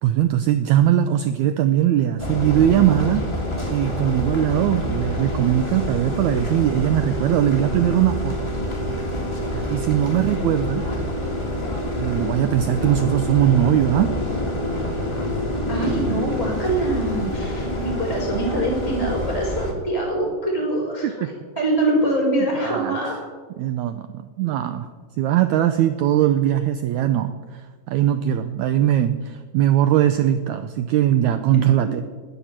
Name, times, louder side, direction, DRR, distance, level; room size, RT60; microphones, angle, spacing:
voice 1, 0.0-3.3 3.7-8.4 9.5-10.8 12.0-14.2 21.0-21.3 22.6-23.0 23.6-24.9 25.2-27.6 27.9-32.0, right 11 dB, 80° right, 10 dB, 1.7 m, -20 dB
sound 1, 2.2-19.7, left 1 dB, 15° left, 1.0 m, -27 dB
voice 2, 15.7-23.1, right 1 dB, 10° right, -1 dB, 2.9 m, -24 dB
20.0 x 7.1 x 7.4 m, 1.5 s
omnidirectional pair, 3.9 m